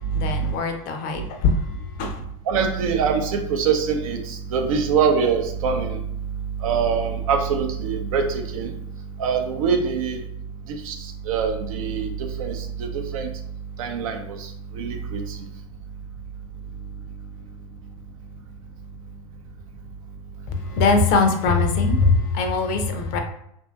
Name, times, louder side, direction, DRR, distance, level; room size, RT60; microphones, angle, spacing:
voice 1, 0.1-2.2 20.5-23.2, left 4 dB, 50° left, 5 dB, 0.5 m, -21 dB
voice 2, 2.5-6.0 6.6-8.7 9.2-10.2 10.8-13.3 13.8-15.4, right 6 dB, 70° right, 4 dB, 0.5 m, -24 dB
2.7 x 2.6 x 2.3 m, 0.73 s
hypercardioid pair, 85°, 18 cm